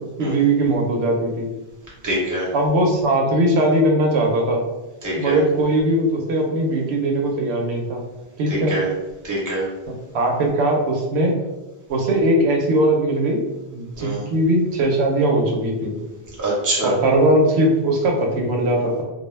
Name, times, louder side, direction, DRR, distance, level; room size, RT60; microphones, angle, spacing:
voice 1, 0.2-1.5 2.5-4.6 5.2-8.0 8.4-8.7 10.1-11.3 11.9-13.4 13.7-15.9 16.8-19.0, right 1 dB, 85° right, 1 dB, 0.8 m, -19 dB
voice 2, 2.0-2.5 5.0-5.4 8.5-8.9 9.2-9.7 14.0-14.2 16.4-16.9, right 1 dB, 20° right, -6 dB, 0.7 m, -24 dB
2.3 x 2.1 x 3.1 m, 1.1 s
omnidirectional pair, 1.1 m